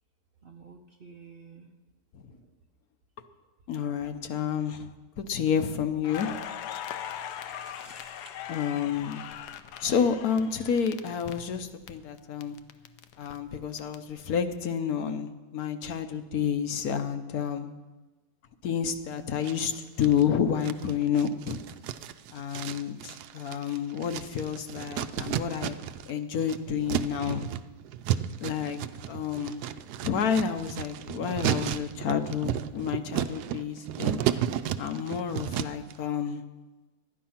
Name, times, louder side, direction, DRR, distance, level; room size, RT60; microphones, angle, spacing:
voice 1, 0.4-1.7 7.3-8.3, right 3 dB, 55° right, 4 dB, 0.6 m, -51 dB
voice 2, 3.7-4.9 5.2-6.4 8.5-9.2 9.8-12.6 13.2-17.7 18.6-21.6 22.3-25.8 26.1-27.4 28.4-28.8 29.1-29.6 30.0-34.2 34.8-36.4, left 7 dB, 70° left, 8 dB, 1.2 m, -29 dB
Crackle, 6.0-11.9 12.2-13.9, left 10 dB, 85° left, 1.2 m, -40 dB
sound 1, 19.4-20.2 20.6-26.1 26.4-35.9, right 11 dB, 80° right, 1.1 m, -33 dB
12.0 x 10.0 x 5.7 m, 1.2 s
omnidirectional pair, 1.7 m